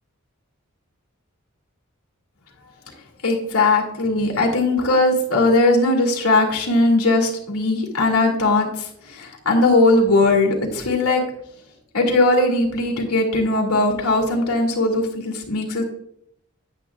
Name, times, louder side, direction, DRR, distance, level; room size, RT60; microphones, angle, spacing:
voice 1, 3.2-11.2 11.9-15.8, left 2 dB, 80° left, 0 dB, 2.4 m, -19 dB
10.5 x 9.3 x 2.4 m, 0.72 s
head